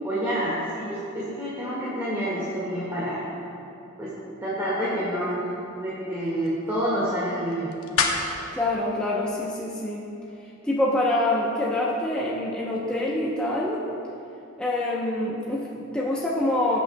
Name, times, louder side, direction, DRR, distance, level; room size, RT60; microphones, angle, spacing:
voice 1, 0.0-3.2 4.0-4.1 4.4-5.4 5.8-7.7, equal, 15° right, -9 dB, 1.8 m, -28 dB
sound 1, 5.0-10.2, left 4 dB, 85° left, 0.9 m, -33 dB
voice 2, 8.5-10.1 10.6-13.8 14.6-16.8, left 1 dB, 5° left, -6 dB, 0.7 m, -26 dB
17.0 x 8.0 x 2.2 m, 2.8 s
head